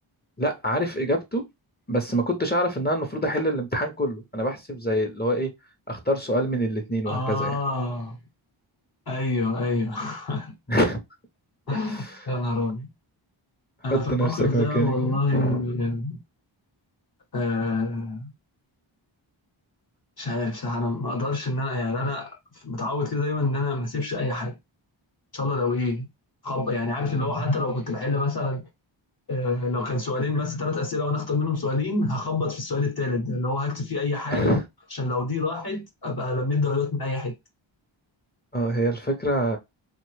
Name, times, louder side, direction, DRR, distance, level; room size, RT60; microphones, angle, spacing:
voice 1, 0.4-1.5 1.9-5.5 5.9-7.6 10.7-11.0 11.7-12.2 13.9-15.7 27.2-27.3 34.3-34.6 38.5-39.6, right 1 dB, 20° left, 0.6 m, -25 dB
voice 2, 7.1-8.2 9.1-10.5 11.7-12.9 13.8-16.2 17.3-18.3 20.2-24.6 25.3-26.1 26.4-28.7 29.3-34.6 34.9-37.3, left 2 dB, 50° left, 0.9 m, -27 dB
3.0 x 2.2 x 3.1 m
wide cardioid pair, 90°, 48 cm